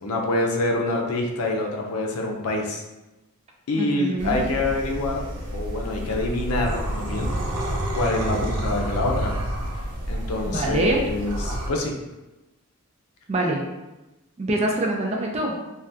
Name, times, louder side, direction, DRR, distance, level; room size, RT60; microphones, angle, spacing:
voice 1, 0.0-2.8 3.7-5.2 5.5-7.3 7.9-9.3 10.1-12.0, left 2 dB, 70° left, 1 dB, 0.5 m, -26 dB
voice 2, 3.8-4.4 10.4-11.0 13.3-13.6 14.4-15.5, right 2 dB, 30° right, 0 dB, 0.4 m, -24 dB
sound 1, 4.2-11.7, right 1 dB, 85° right, 0.6 m, -29 dB
2.6 x 2.3 x 3.3 m, 1.0 s
head